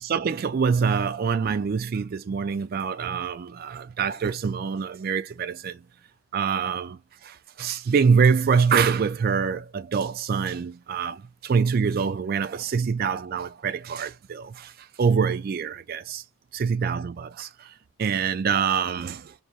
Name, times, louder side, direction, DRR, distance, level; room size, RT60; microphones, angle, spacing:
voice 1, 0.0-5.8 6.3-14.7 15.0-16.2 16.5-17.7 18.0-19.3, right 6 dB, 45° right, 0.3 m, -25 dB
4.7 x 2.7 x 2.4 m
head